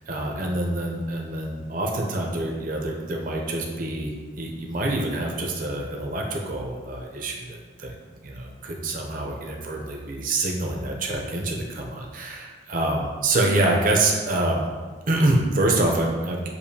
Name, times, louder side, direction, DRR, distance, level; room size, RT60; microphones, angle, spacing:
voice 1, 0.1-7.9 8.2-14.7 15.1-16.5, right 2 dB, 45° right, 0 dB, 0.6 m, -26 dB
6.9 x 2.6 x 2.8 m, 1.4 s
head